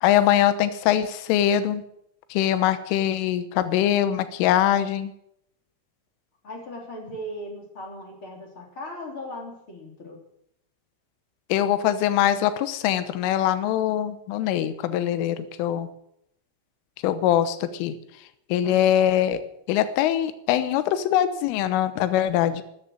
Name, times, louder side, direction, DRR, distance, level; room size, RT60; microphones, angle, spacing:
voice 1, 0.0-1.8 2.3-5.1 11.5-15.9 17.0-18.0 18.5-19.4 19.7-22.6, left 11 dB, 80° left, 12 dB, 3.4 m, -22 dB
voice 2, 6.4-10.2 18.6-18.9, equal, 30° left, 0 dB, 3.4 m, -38 dB
13.0 x 10.5 x 8.9 m, 0.77 s
omnidirectional pair, 5.9 m